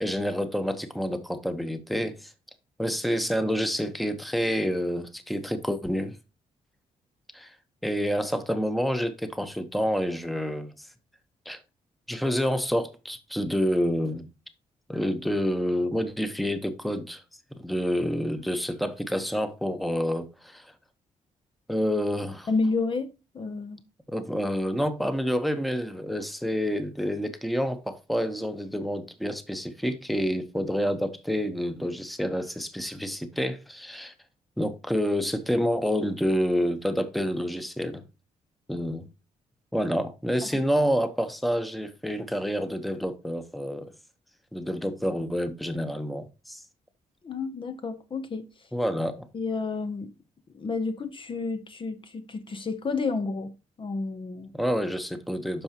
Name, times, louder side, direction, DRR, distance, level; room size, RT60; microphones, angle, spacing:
voice 1, 0.0-2.3 2.8-6.2 7.3-7.5 7.8-10.9 11.5-11.6 12.1-14.3 14.9-17.2 17.5-20.7 21.7-22.5 24.1-34.1 34.6-38.0 38.7-39.1 39.7-43.9 44.5-46.6 48.7-49.3 54.5-55.6, equal, ahead, 1.0 m, -28 dB
voice 2, 22.5-23.8 40.4-40.6 47.2-48.5 49.3-50.1 50.5-54.5, left 4 dB, 40° left, 0.8 m, -31 dB
12.0 x 4.8 x 2.9 m
cardioid pair, 95°, 14 cm